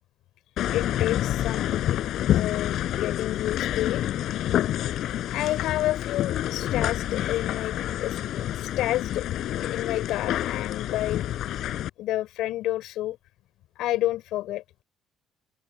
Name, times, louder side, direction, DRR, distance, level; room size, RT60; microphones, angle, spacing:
sound 1, 0.6-11.9, left 12 dB, 65° left, 7.8 m, -28 dB
voice 1, 0.7-2.0 2.3-4.0 5.2-9.4 9.7-11.3 12.0-13.2 13.8-14.8, left 15 dB, 80° left, 5.6 m, -30 dB
open air
cardioid pair, 135°, 0 cm